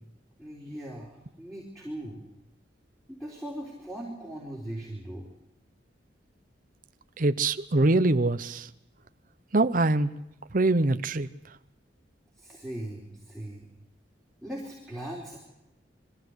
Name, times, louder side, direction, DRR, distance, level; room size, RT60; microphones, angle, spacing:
voice 1, 0.4-2.2 3.2-5.3 12.4-13.7 14.4-15.4, right 1 dB, ahead, -4 dB, 4.1 m, -39 dB
voice 2, 7.2-8.7 9.5-10.1 10.5-11.3, right 2 dB, 50° right, 10 dB, 0.8 m, -23 dB
22.5 x 15.5 x 8.0 m, 0.89 s
head